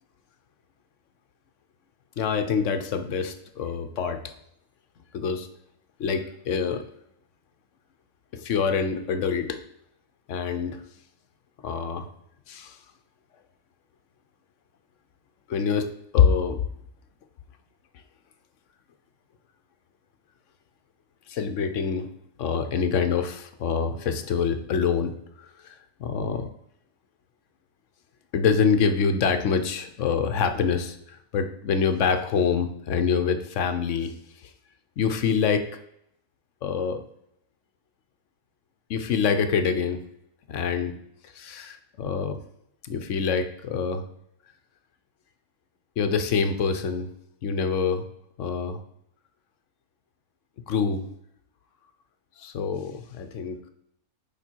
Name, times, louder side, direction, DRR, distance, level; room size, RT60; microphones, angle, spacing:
voice 1, 2.2-4.3 5.1-5.5 6.0-6.9 8.3-9.6 10.3-10.8 11.6-12.1 12.5-12.8 15.5-16.6 21.3-22.1 22.4-25.7 26.0-26.5 28.3-34.1 34.4-34.5 35.0-35.7 36.6-37.0 38.9-40.0 40.5-41.0 41.2-42.4 42.8-44.1 46.0-47.1 47.4-48.1 48.4-48.8 50.7-51.1 52.4-53.7, left 6 dB, 60° left, 8 dB, 1.0 m, -26 dB
7.1 x 4.9 x 4.5 m, 0.74 s
omnidirectional pair, 1.6 m